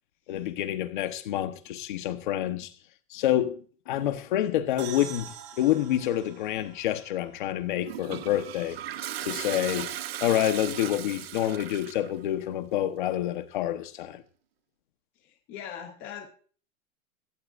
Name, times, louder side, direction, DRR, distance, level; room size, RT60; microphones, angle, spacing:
voice 1, 0.3-2.7 3.1-8.8 9.2-9.9 10.2-14.2, left 12 dB, 35° left, 1.2 m, -28 dB
sound 1, 4.8-8.3, right 9 dB, 20° right, 1.1 m, -45 dB
Toilet flush, 7.8-12.1, right 12 dB, 40° right, 0.8 m, -37 dB
voice 2, 15.2-16.3, left 8 dB, 10° left, 0.8 m, -41 dB
17.5 x 15.5 x 2.6 m
supercardioid pair, 180°, 44 cm